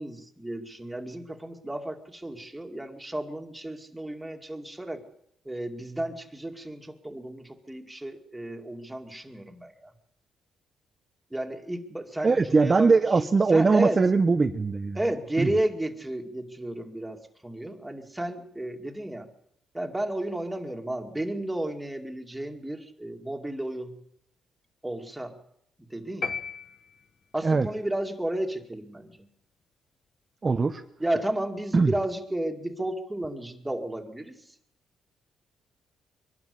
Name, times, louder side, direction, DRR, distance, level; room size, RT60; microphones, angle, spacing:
voice 1, 0.0-5.0 5.4-9.9 11.3-13.0 13.5-14.0 14.9-19.3 19.7-24.0 24.8-25.4 25.8-26.4 27.3-29.3 31.0-34.4, right 1 dB, 10° right, 4 dB, 2.4 m, -33 dB
voice 2, 12.2-15.0 15.4-15.5 27.4-27.7 30.4-30.8 31.7-31.9, right 4 dB, 30° right, 7 dB, 0.8 m, -21 dB
sound 1, 26.2-27.5, left 5 dB, 40° left, 1.4 m, -35 dB
23.0 x 12.0 x 9.7 m, 0.74 s
cardioid pair, 90°, 0 cm